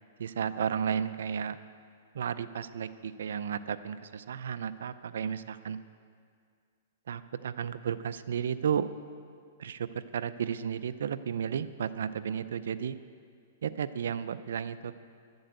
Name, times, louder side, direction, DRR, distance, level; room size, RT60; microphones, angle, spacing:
voice 1, 0.2-1.6 2.1-5.8 7.1-8.9 9.6-13.0 13.6-14.9, right 8 dB, 80° right, 13 dB, 0.5 m, -33 dB
11.0 x 7.9 x 9.3 m, 2.2 s
hypercardioid pair, 150°, 0 cm